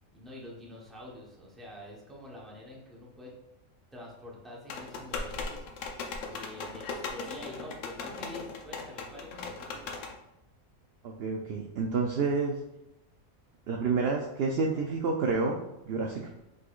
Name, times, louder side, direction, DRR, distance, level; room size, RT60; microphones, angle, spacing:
voice 1, 0.1-3.3 3.9-6.0 6.3-10.0, left 1 dB, ahead, -4 dB, 0.7 m, -46 dB
sound 1, 4.7-10.1, left 4 dB, 65° left, 0.9 m, -38 dB
voice 2, 11.0-12.6 13.7-15.6 15.9-16.4, right 4 dB, 65° right, 1 dB, 0.6 m, -29 dB
5.1 x 4.1 x 2.4 m, 0.87 s
omnidirectional pair, 1.5 m